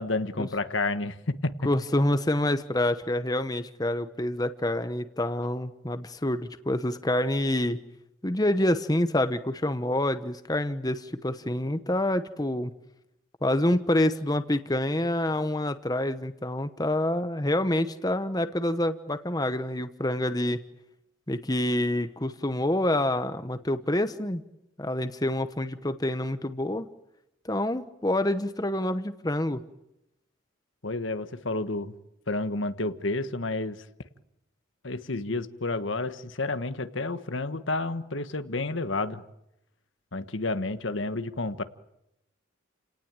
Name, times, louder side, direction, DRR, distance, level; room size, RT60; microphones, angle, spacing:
voice 1, 0.0-1.5 30.8-31.9 32.3-33.9 34.8-39.2 40.1-41.6, left 2 dB, 70° left, 11 dB, 1.4 m, -30 dB
voice 2, 1.6-7.8 8.2-12.7 13.4-20.6 21.3-24.4 24.8-26.9 27.4-29.6, left 1 dB, 20° left, 10 dB, 1.1 m, -27 dB
30.0 x 18.5 x 9.0 m, 0.86 s
head